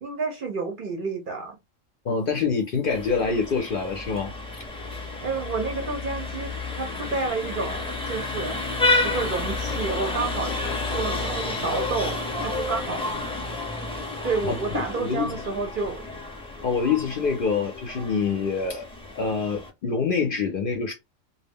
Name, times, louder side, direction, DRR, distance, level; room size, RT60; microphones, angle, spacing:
voice 1, 0.0-1.6 5.2-8.6 9.0-10.5 10.9-13.1 14.2-16.0, right 4 dB, 55° right, 0.6 m, -30 dB
voice 2, 2.0-4.3 14.4-15.3 16.6-18.9 19.1-20.9, left 5 dB, 60° left, 0.6 m, -26 dB
Vehicle horn car horn honking, 2.9-19.7, left 2 dB, 5° left, 0.5 m, -30 dB
2.3 x 2.0 x 3.4 m
omnidirectional pair, 1.3 m